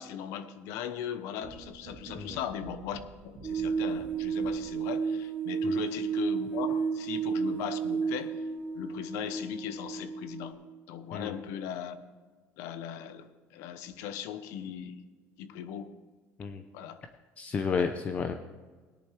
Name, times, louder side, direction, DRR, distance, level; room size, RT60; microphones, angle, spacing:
voice 1, 0.0-8.4 8.7-10.6 10.9-12.0 12.6-15.0 15.4-15.9 16.7-17.0, left 9 dB, 75° left, 11 dB, 1.0 m, -38 dB
sound 1, 1.4-4.9, right 5 dB, 50° right, 2.5 m, -49 dB
sound 2, 3.4-10.5, right 6 dB, 15° right, 2.1 m, -32 dB
voice 2, 17.4-18.3, left 5 dB, 30° left, 7 dB, 0.7 m, -31 dB
18.0 x 10.5 x 3.3 m, 1.4 s
cardioid pair, 145°, 5 cm